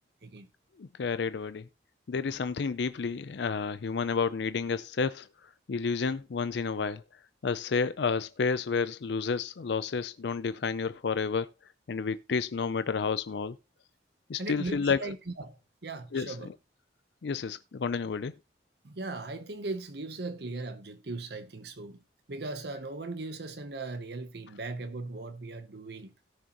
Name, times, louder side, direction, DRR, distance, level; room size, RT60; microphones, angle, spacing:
voice 1, 0.8-1.7 2.1-5.3 5.7-7.0 7.4-11.5 11.9-13.6 14.3-15.1 16.1-16.4 17.2-18.3, left 5 dB, 70° left, 0.4 m, -30 dB
voice 2, 14.4-16.5 18.8-22.0 22.3-26.1, right 2 dB, 60° right, 0.8 m, -38 dB
17.5 x 6.4 x 2.9 m
head